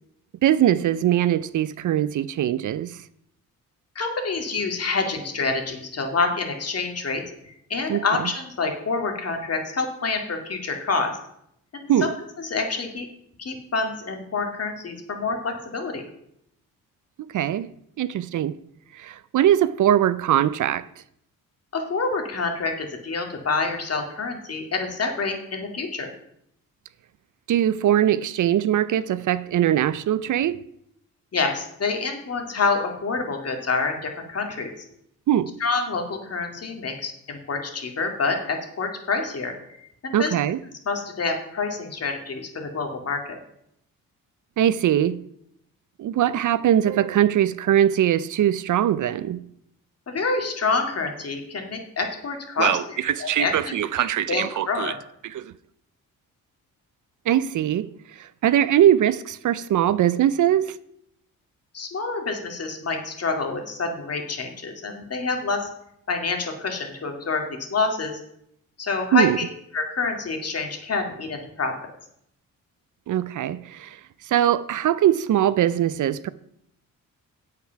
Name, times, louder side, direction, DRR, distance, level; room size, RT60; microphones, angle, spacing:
voice 1, 0.4-3.0 7.9-8.3 11.9-12.1 17.3-17.7 18.0-18.6 18.9-20.9 27.5-30.6 35.3-35.5 40.1-40.6 44.6-45.2 46.0-49.4 52.6-54.9 55.2-55.5 57.3-60.8 69.1-69.4 73.1-74.0 74.3-76.3, right 11 dB, 60° right, 0.5 m, -21 dB
voice 2, 4.0-11.1 11.7-12.1 12.4-13.1 13.4-16.0 21.7-26.1 31.3-34.9 35.6-39.5 40.0-40.3 40.8-43.4 50.1-54.9 61.7-65.6 66.1-68.2 68.8-69.5 69.7-71.7, left 4 dB, 45° left, 2.3 m, -27 dB
8.6 x 8.2 x 5.8 m
cardioid pair, 105°, 34 cm